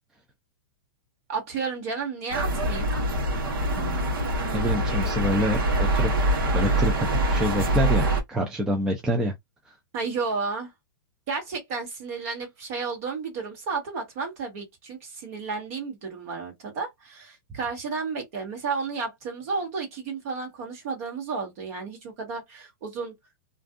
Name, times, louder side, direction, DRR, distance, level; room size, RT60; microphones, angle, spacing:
voice 1, 1.3-2.9 9.9-10.7 11.3-23.1, right 4 dB, 40° right, 1.4 m, -32 dB
sound 1, 2.3-8.2, right 1 dB, 85° right, 1.1 m, -24 dB
voice 2, 4.5-6.1 6.5-9.3 9.7-9.8, equal, 5° right, 0.3 m, -27 dB
2.6 x 2.3 x 2.4 m
supercardioid pair, 165°, 12 cm